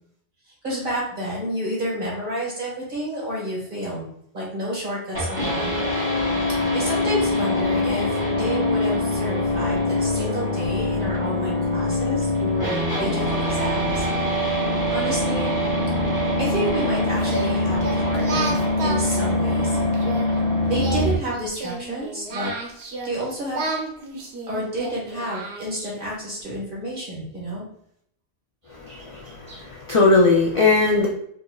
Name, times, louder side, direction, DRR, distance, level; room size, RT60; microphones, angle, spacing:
voice 1, 0.5-4.1 4.3-6.1 6.5-14.1 14.9-15.5 16.4-19.8 20.7-22.5 23.0-23.7 24.5-27.6, right 1 dB, 50° right, -5 dB, 1.6 m, -30 dB
sound 1, 5.1-21.1, left 1 dB, 20° right, 1.1 m, -23 dB
Singing, 17.2-20.3 20.7-23.2 23.5-26.1, right 3 dB, 75° right, 1.0 m, -32 dB
voice 2, 28.7-31.1, left 3 dB, 50° left, -3 dB, 0.4 m, -19 dB
4.4 x 2.5 x 2.3 m, 0.70 s
omnidirectional pair, 1.1 m